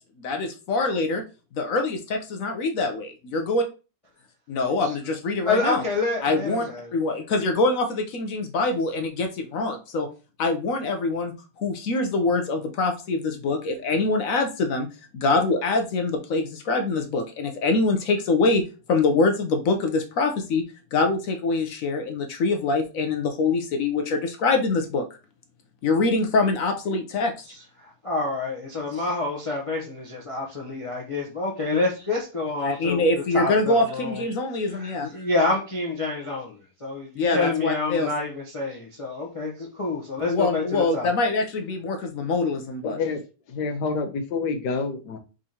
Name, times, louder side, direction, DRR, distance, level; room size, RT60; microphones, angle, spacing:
voice 1, 0.2-1.2 1.5-3.1 3.3-3.6 4.5-5.8 6.2-6.6 6.9-10.1 10.4-14.9 15.1-20.6 20.9-25.0 25.8-27.3 32.6-35.1 37.2-38.1 40.3-43.0, left 3 dB, 65° left, 1.0 m, -24 dB
voice 2, 5.5-7.0 27.5-33.1 33.3-34.3 34.7-41.1, left 3 dB, 30° left, 0.7 m, -28 dB
voice 3, 42.8-43.2 43.5-45.2, left 4 dB, 90° left, 1.4 m, -28 dB
4.9 x 3.8 x 2.8 m
omnidirectional pair, 1.7 m